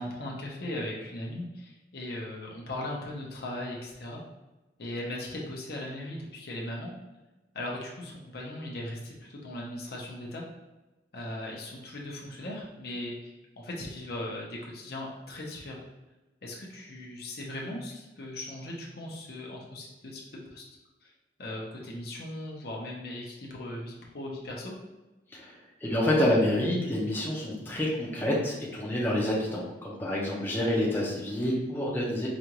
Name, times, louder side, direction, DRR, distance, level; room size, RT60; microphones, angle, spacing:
voice 1, 0.0-4.2 4.8-6.9 7.5-10.4 11.1-15.8 16.4-20.6 21.0-21.1 21.4-24.7, left 1 dB, 55° left, -2 dB, 0.8 m, -38 dB
voice 2, 25.3-32.3, left 1 dB, 10° left, -5 dB, 0.7 m, -28 dB
5.0 x 2.5 x 3.0 m, 1.0 s
head